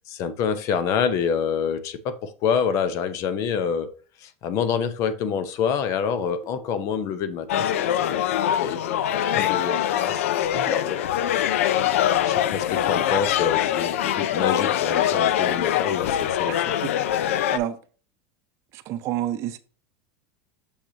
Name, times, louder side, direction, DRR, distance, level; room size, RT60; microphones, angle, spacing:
voice 1, 0.2-3.9 4.2-8.2 8.6-11.6 11.9-16.8, left 7 dB, 45° left, 0.8 m, -27 dB
sound 1, 6.0-15.4, right 3 dB, 25° right, 1.1 m, -46 dB
sound 2, 7.5-17.6, left 11 dB, 90° left, 0.5 m, -23 dB
voice 2, 16.5-17.8 18.7-19.6, right 12 dB, 45° right, 0.7 m, -31 dB
6.5 x 5.9 x 2.8 m
supercardioid pair, 140°, 7 cm